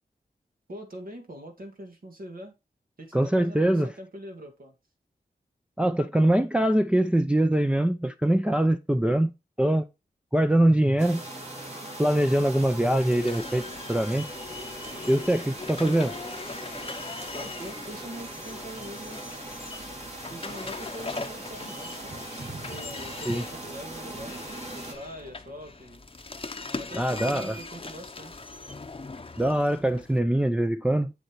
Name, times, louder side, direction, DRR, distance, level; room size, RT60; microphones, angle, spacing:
voice 1, 0.7-2.5 3.0-4.7 17.3-19.2 20.3-22.1 22.7-26.1 26.8-28.4, equal, 60° right, 2.0 m, -43 dB
voice 2, 3.1-3.9 5.8-9.3 9.6-9.8 10.3-11.2 12.0-14.2 15.1-16.1 23.3-23.4 26.9-27.6 29.4-31.1, right 1 dB, 5° right, 0.5 m, -23 dB
sound 1, 11.0-24.9, right 1 dB, 40° right, 2.9 m, -40 dB
sound 2, 13.0-30.2, left 3 dB, 35° left, 0.8 m, -41 dB
7.8 x 7.0 x 3.1 m
wide cardioid pair, 70°, 17 cm